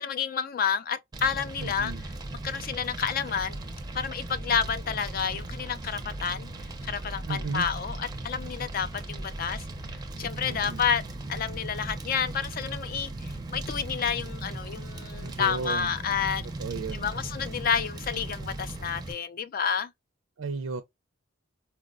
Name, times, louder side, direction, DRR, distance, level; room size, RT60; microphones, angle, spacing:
voice 1, 0.0-1.9 2.4-3.6 3.9-6.5 6.8-9.6 10.2-11.0 11.3-16.5 16.9-19.9, left 7 dB, 45° left, 0.4 m, -30 dB
Fire, 1.1-19.1, right 2 dB, 20° right, 0.5 m, -38 dB
voice 2, 1.6-2.0 7.3-7.6 10.4-10.8 15.1-15.9 16.6-17.1 20.4-20.8, right 4 dB, 85° right, 0.4 m, -34 dB
4.4 x 2.1 x 2.3 m
head